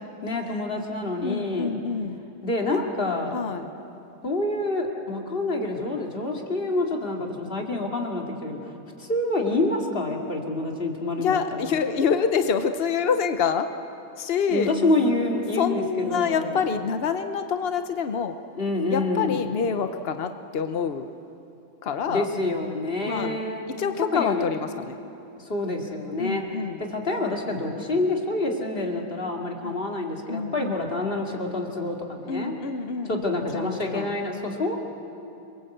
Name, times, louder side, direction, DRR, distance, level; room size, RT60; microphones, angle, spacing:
voice 1, 0.2-1.8 2.4-3.4 4.2-8.7 9.0-11.6 14.5-16.6 18.6-19.5 22.1-23.6 24.0-24.5 25.4-26.4 26.8-32.5 33.1-34.8, left 2 dB, 30° left, 1 dB, 2.5 m, -27 dB
voice 2, 1.2-2.2 2.7-2.8 3.3-3.7 11.2-13.7 14.2-14.7 15.6-18.3 18.9-21.1 21.8-22.3 23.1-23.4 23.8-25.0 26.2-26.8 29.6-29.8 30.3-30.8 32.3-33.2 33.5-34.1, left 6 dB, 65° left, 8 dB, 0.5 m, -26 dB
28.5 x 21.5 x 8.0 m, 2.8 s
omnidirectional pair, 2.1 m